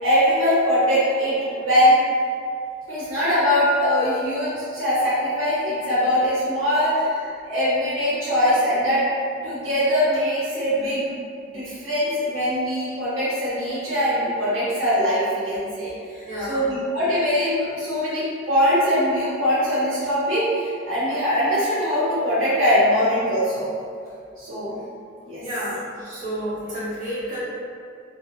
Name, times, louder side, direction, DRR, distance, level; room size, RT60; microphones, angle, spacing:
voice 1, 0.0-2.0 2.9-9.1 9.4-11.1 11.5-15.9 16.5-23.7 24.4-24.8 25.3-25.4, equal, 90° right, -10 dB, 0.8 m, -22 dB
voice 2, 16.2-16.7 25.4-27.4, equal, 40° right, -14 dB, 1.4 m, -30 dB
2.7 x 2.2 x 2.7 m, 2.3 s
head